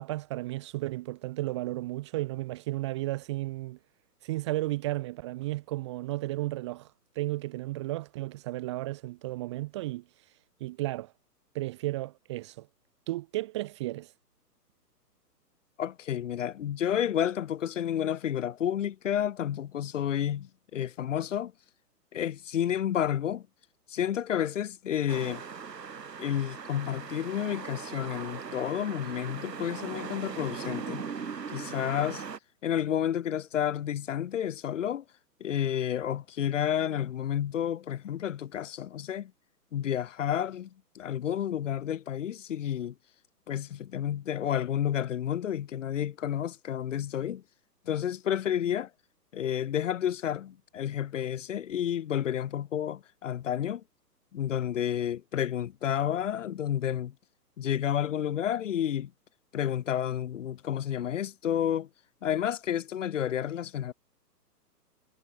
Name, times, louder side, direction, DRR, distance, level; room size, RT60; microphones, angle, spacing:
voice 1, 0.0-3.8 4.2-6.9 7.2-10.0 10.6-11.1 11.5-12.7 13.1-14.1, right 18 dB, 20° right, 0.7 m, -33 dB
voice 2, 15.8-21.5 22.1-23.4 23.9-25.4 26.2-31.0 31.5-32.2 32.6-35.0 35.4-39.3 39.7-40.7 40.9-42.9 43.5-47.4 47.9-48.9 49.3-53.8 54.3-57.1 57.6-59.1 59.5-61.9 62.2-63.9, left 10 dB, 50° left, 0.9 m, -30 dB
sound 1, 25.1-32.4, right 6 dB, 85° right, 1.5 m, -39 dB
figure-of-eight pair, 130°, 49 cm